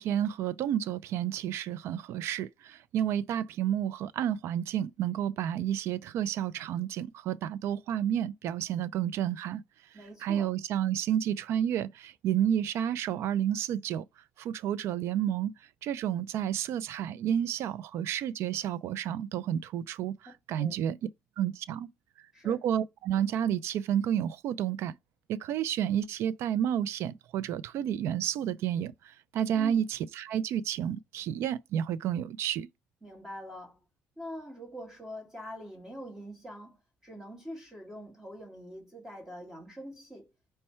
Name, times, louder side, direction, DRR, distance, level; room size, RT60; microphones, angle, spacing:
voice 1, 0.0-9.6 10.2-14.0 14.4-15.5 15.8-21.0 21.4-21.9 22.4-25.0 25.3-32.7, right 10 dB, 65° right, 0.4 m, -30 dB
voice 2, 9.9-10.5 20.5-20.8 22.3-22.7 29.5-29.8 33.0-33.8 34.2-40.3, equal, 10° right, 1.5 m, -44 dB
5.4 x 2.2 x 4.3 m
cardioid pair, 120°, 5 cm